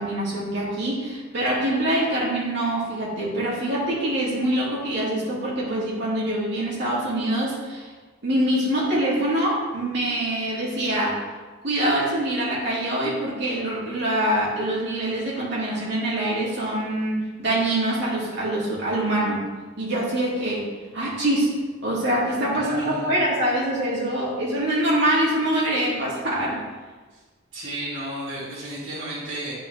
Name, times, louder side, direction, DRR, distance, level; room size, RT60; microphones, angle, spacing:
voice 1, 0.0-7.9 8.2-11.2 11.6-19.4 19.8-20.7 20.9-21.5 21.8-26.6, right 1 dB, 55° right, -6 dB, 2.6 m, -24 dB
voice 2, 22.5-23.2 27.1-27.2 27.5-29.5, right 1 dB, 80° right, -11 dB, 2.4 m, -33 dB
10.0 x 5.2 x 3.3 m, 1.3 s
head